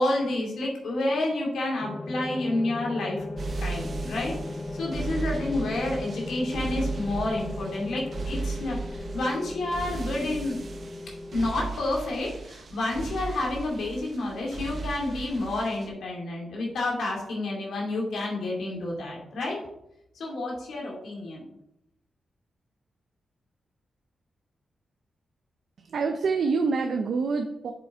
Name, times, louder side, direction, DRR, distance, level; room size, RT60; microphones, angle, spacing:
voice 1, 0.0-3.2 3.6-4.3 4.7-10.6 11.3-19.6 20.1-21.4, left 2 dB, 85° left, -2 dB, 2.4 m, -29 dB
sound 1, 1.8-11.5, left 2 dB, 25° left, 0.5 m, -37 dB
sound 2, 3.4-15.9, right 4 dB, 45° right, 0.9 m, -36 dB
voice 2, 25.8-27.7, right 4 dB, 65° right, 5 dB, 0.6 m, -26 dB
7.8 x 6.8 x 3.6 m, 0.82 s
wide cardioid pair, 150°, 0 cm